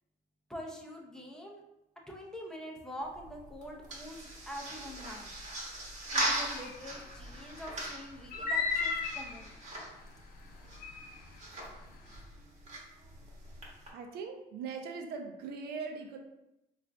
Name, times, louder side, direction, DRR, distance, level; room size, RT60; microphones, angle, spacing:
voice 1, 0.5-1.6 2.1-5.3 6.1-9.5, equal, 5° left, -1 dB, 0.6 m, -45 dB
sound 1, 3.0-13.9, right 1 dB, 45° right, 1.2 m, -40 dB
sound 2, 6.5-6.8 8.3-9.4 10.8-11.1, left 4 dB, 55° left, 0.5 m, -33 dB
voice 2, 13.9-16.2, right 5 dB, 70° right, 4 dB, 0.6 m, -40 dB
3.5 x 2.5 x 3.4 m, 0.90 s
cardioid pair, 110°, 17 cm